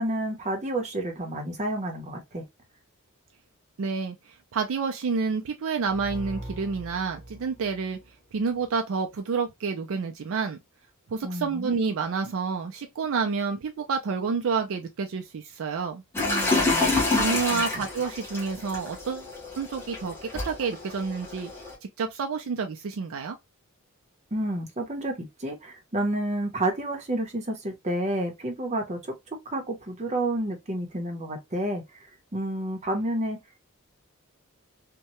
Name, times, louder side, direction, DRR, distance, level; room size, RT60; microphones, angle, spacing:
voice 1, 0.0-2.4 11.2-11.7 16.2-16.9 17.5-17.6 24.3-29.1 29.5-31.8 32.3-33.4, right 1 dB, 30° right, 0.8 m, -30 dB
voice 2, 3.8-8.0 8.3-10.6 11.1-16.0 17.2-19.3 19.6-20.2 20.4-21.5 22.0-23.4, right 5 dB, 60° right, 0.4 m, -29 dB
sound 1, 5.8-8.6, right 1 dB, 45° left, 1.4 m, -42 dB
sound 2, 16.1-21.7, left 2 dB, 10° left, 0.9 m, -28 dB
2.7 x 2.2 x 2.9 m
head